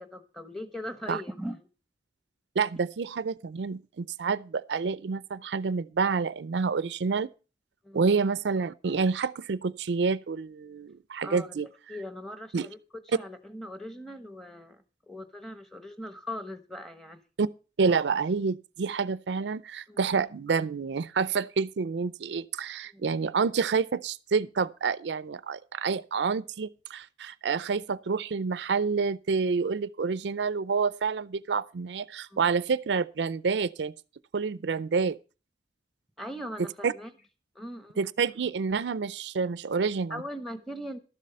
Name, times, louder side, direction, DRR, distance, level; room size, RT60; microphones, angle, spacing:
voice 1, 0.0-1.7 7.8-8.2 11.2-11.6 11.9-17.2 19.9-20.1 22.9-23.2 32.3-32.5 36.2-37.1 37.5-38.0 40.1-41.0, equal, ahead, 1.1 m, -40 dB
voice 2, 2.6-7.3 7.9-11.7 12.5-12.7 17.4-17.5 17.8-33.9 34.3-35.2 36.8-36.9 38.0-40.2, right 5 dB, 85° right, 0.5 m, -28 dB
12.5 x 7.5 x 5.5 m
head